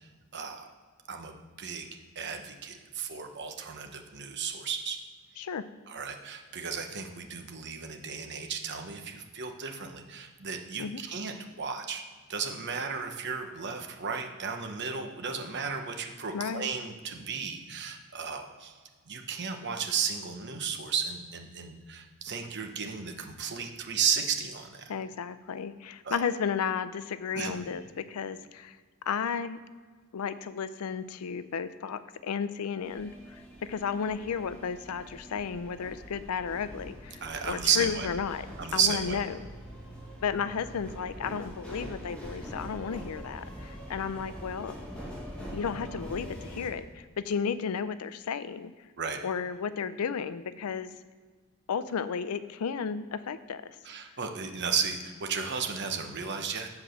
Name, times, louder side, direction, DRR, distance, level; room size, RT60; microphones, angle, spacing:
voice 1, 0.3-0.7 1.1-1.9 2.2-5.0 5.9-12.0 12.3-18.7 19.1-24.8 26.0-26.2 27.3-27.6 37.2-38.1 38.6-39.2 49.0-49.2 53.8-56.7, right 6 dB, 55° right, 5 dB, 0.9 m, -34 dB
voice 2, 16.3-16.7 24.9-28.8 29.1-29.6 30.1-33.1 33.7-38.5 38.7-39.5 40.2-44.8 45.5-48.7 49.2-50.9 51.7-53.6, left 6 dB, 90° left, 14 dB, 0.5 m, -33 dB
sound 1, 32.8-46.7, equal, 5° left, 1.8 m, -44 dB
7.9 x 4.7 x 6.5 m, 1.5 s
head